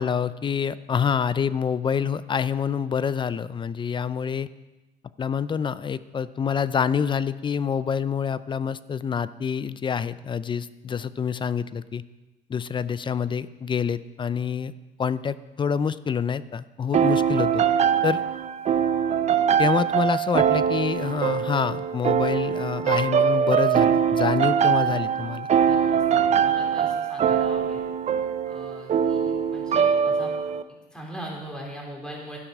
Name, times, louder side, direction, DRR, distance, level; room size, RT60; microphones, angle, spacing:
voice 1, 0.0-4.5 5.2-12.0 12.5-14.7 15.0-17.6 18.0-18.2 19.6-25.5, left 7 dB, 30° left, 16 dB, 0.4 m, -27 dB
sound 1, 16.9-30.6, right 8 dB, 40° right, 0.5 m, -22 dB
voice 2, 25.6-27.9 28.5-30.3 30.7-32.4, right 1 dB, 5° left, -2 dB, 3.9 m, -40 dB
12.5 x 9.1 x 6.1 m, 1.1 s
cardioid pair, 110°, 17 cm